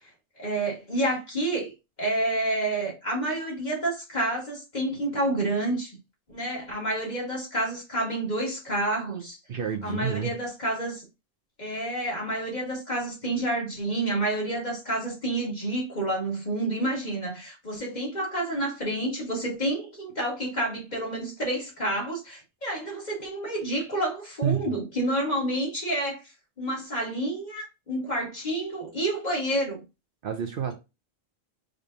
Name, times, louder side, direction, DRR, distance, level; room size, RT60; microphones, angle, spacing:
voice 1, 0.4-1.7 2.0-5.9 6.3-9.4 9.8-11.0 11.6-26.2 26.6-29.8, right 1 dB, 40° left, 2.1 m, -29 dB
voice 2, 9.5-10.3 24.4-24.7 30.2-30.7, right 8 dB, 60° right, 0.7 m, -29 dB
5.1 x 3.3 x 2.7 m
omnidirectional pair, 1.1 m